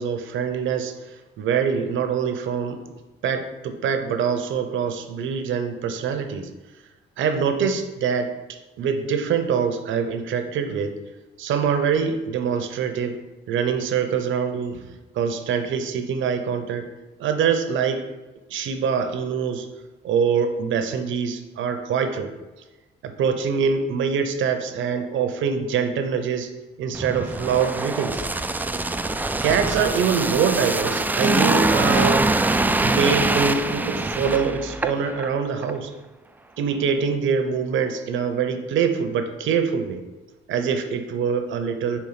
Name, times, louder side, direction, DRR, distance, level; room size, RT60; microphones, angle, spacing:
voice 1, 0.0-2.8 3.2-6.5 7.2-11.0 11.4-13.2 13.5-14.9 15.1-16.9 17.2-18.0 18.5-19.7 20.0-22.3 23.0-26.5 26.8-28.2 29.4-32.3 32.6-35.9 36.6-40.0 40.5-42.0, right 6 dB, 75° right, 7 dB, 0.8 m, -24 dB
sound 1, 26.9-35.3 35.6-35.8, right 2 dB, 10° right, 0.3 m, -23 dB
4.5 x 4.5 x 5.7 m, 1.1 s
cardioid pair, 90°, 20 cm